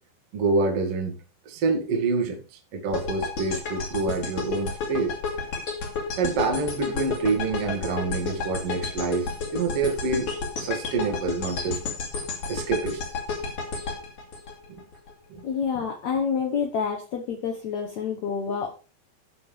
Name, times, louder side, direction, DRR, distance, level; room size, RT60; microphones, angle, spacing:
voice 1, 0.3-1.2 1.5-5.2 6.0-10.3 10.6-11.8 12.5-13.0 14.7-14.8 15.3-15.4, right 4 dB, 45° right, 2.1 m, -27 dB
sound 1, 2.9-15.1, left 4 dB, 45° left, 3.8 m, -31 dB
voice 2, 15.4-18.7, left 6 dB, 70° left, 1.7 m, -28 dB
18.0 x 6.1 x 3.4 m
omnidirectional pair, 5.1 m